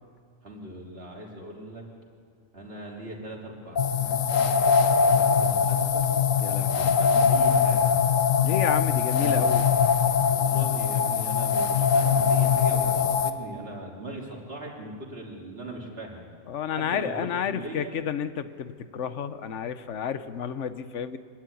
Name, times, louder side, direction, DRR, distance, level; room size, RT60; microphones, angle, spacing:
voice 1, 0.4-1.8 2.5-6.1 6.7-8.0 9.1-9.5 10.3-16.2 16.7-18.0, right 1 dB, 50° right, -2 dB, 3.4 m, -40 dB
sound 1, 3.8-13.3, left 6 dB, 90° left, 1.3 m, -22 dB
voice 2, 6.4-6.9 8.4-9.7 16.5-21.2, left 8 dB, 70° left, 12 dB, 1.2 m, -31 dB
24.5 x 12.0 x 9.4 m, 2.2 s
omnidirectional pair, 1.3 m